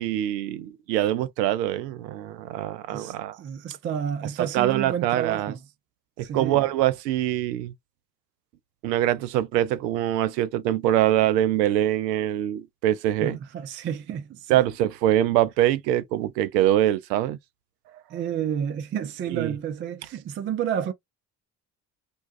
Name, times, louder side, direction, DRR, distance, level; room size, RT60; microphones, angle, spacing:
voice 1, 0.0-3.4 4.4-5.5 6.2-7.7 8.8-13.4 14.5-17.4 19.3-19.5, right 13 dB, 75° right, 0.6 m, -24 dB
voice 2, 2.9-5.6 6.2-6.6 13.2-14.6 18.1-20.9, right 8 dB, 25° right, 0.4 m, -30 dB
2.5 x 2.2 x 2.5 m
figure-of-eight pair, 50°, 49 cm